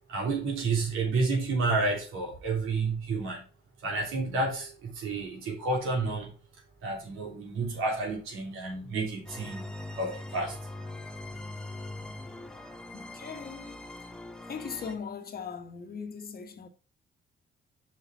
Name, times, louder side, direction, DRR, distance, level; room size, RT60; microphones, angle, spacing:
voice 1, 0.1-3.4 3.8-6.3 6.8-9.7 10.0-10.6, right 3 dB, 85° right, 3.2 m, -30 dB
sound 1, 9.3-15.0, left 2 dB, 5° left, 1.0 m, -41 dB
voice 2, 12.9-13.8 14.5-16.7, left 6 dB, 50° left, 1.3 m, -39 dB
6.1 x 5.4 x 5.5 m
cardioid pair, 90°, 20 cm